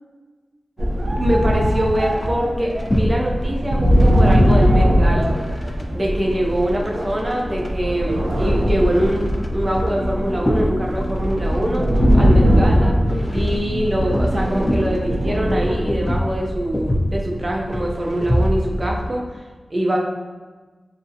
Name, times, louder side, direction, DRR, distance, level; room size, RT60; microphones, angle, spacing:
sound 1, 0.8-19.1, equal, 25° left, 0.3 m, -26 dB
sound 2, 0.8-6.1 6.9-15.8, equal, 90° right, 0.4 m, -20 dB
voice 1, 1.2-5.4 5.9-11.8 12.1-13.0 13.3-19.4 19.7-20.0, equal, 35° right, -2 dB, 0.5 m, -23 dB
2.5 x 2.0 x 2.6 m, 1.3 s
wide cardioid pair, 60°, 0 cm